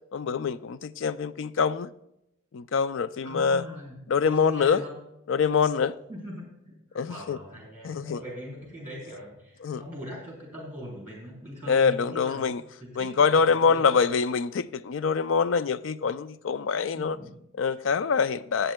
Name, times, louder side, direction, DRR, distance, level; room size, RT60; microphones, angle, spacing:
voice 1, 0.1-1.9 2.5-3.7 4.1-4.8 5.3-6.0 6.9-7.4 7.8-8.2 9.6-9.8 11.7-12.6 13.0-17.2 17.6-18.7, left 5 dB, 60° left, 0.4 m, -25 dB
voice 2, 3.2-5.0 6.1-12.5 12.8-14.0 16.9-17.4, equal, 10° right, 3.6 m, -41 dB
20.5 x 7.8 x 2.2 m
head